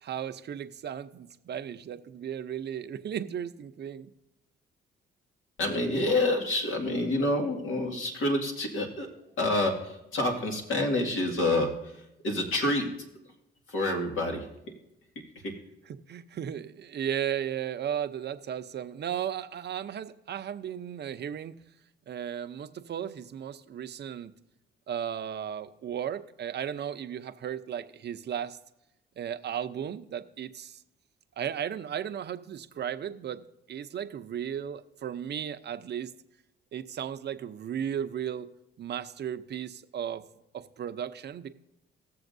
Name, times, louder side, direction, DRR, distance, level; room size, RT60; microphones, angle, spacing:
voice 1, 0.0-4.1 16.1-21.6 22.1-24.3 24.9-28.6 29.2-30.8 31.4-36.1 36.7-38.5 38.8-40.2 40.5-41.5, right 9 dB, 55° right, 10 dB, 0.6 m, -35 dB
voice 2, 5.6-9.1 9.4-13.0 13.7-14.5 15.4-15.5, left 1 dB, 70° left, 2 dB, 2.0 m, -28 dB
18.5 x 7.0 x 2.6 m, 0.89 s
cardioid pair, 75°, 21 cm